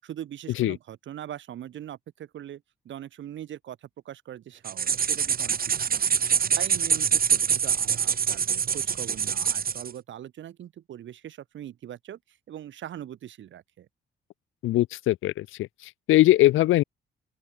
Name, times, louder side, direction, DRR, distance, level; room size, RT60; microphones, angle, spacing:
voice 1, 0.0-6.1 6.6-13.9, right 11 dB, 70° right, 6.2 m, -41 dB
sound 1, 4.6-9.9, right 7 dB, 50° right, 3.2 m, -25 dB
voice 2, 14.6-15.5 16.1-16.8, left 16 dB, 80° left, 0.8 m, -20 dB
open air
cardioid pair, 90°, 20 cm